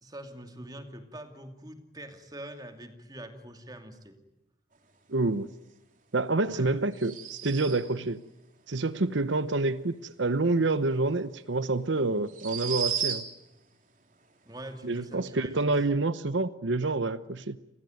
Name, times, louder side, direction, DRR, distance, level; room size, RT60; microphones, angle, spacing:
voice 1, 0.0-4.2 6.5-6.8 14.5-15.7, right 1 dB, 20° right, 6 dB, 2.7 m, -44 dB
voice 2, 5.1-5.5 6.1-8.2 8.7-13.2 14.8-17.6, right 2 dB, 80° right, 13 dB, 0.9 m, -27 dB
sound 1, 6.9-8.0 11.1-11.2 12.3-13.5, right 8 dB, 45° right, 3.6 m, -33 dB
29.5 x 21.5 x 9.4 m, 0.92 s
head